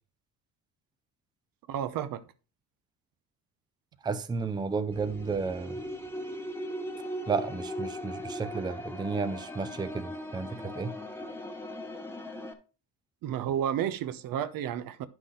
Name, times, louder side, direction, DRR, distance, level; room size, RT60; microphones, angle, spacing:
voice 1, 1.7-2.2 13.2-15.1, right 10 dB, 70° right, 0.9 m, -31 dB
voice 2, 4.0-5.8 7.3-10.9, right 4 dB, 10° right, 0.5 m, -32 dB
sound 1, 4.9-12.5, equal, 5° left, 1.1 m, -39 dB
9.9 x 6.1 x 3.8 m
cardioid pair, 125°, 35 cm